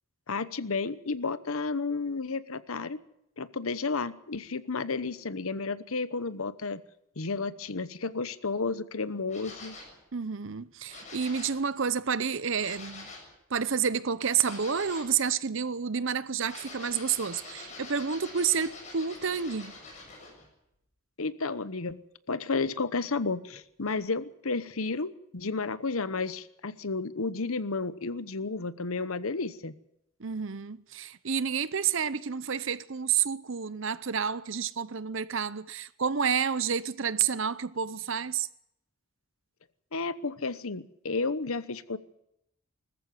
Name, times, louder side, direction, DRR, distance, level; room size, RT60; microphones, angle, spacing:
voice 1, 0.3-3.0 3.4-6.8 7.2-9.8 21.2-22.0 22.3-29.7 39.9-42.0, left 4 dB, 75° left, 1.0 m, -32 dB
sound 1, 9.3-10.0 10.9-11.6 12.6-13.3 14.4-15.1 16.4-20.5 23.8-23.9, left 3 dB, 35° left, 7.3 m, -45 dB
voice 2, 10.1-13.1 13.5-19.8 30.2-38.5, right 7 dB, 60° right, 0.8 m, -29 dB
20.5 x 14.5 x 9.3 m
head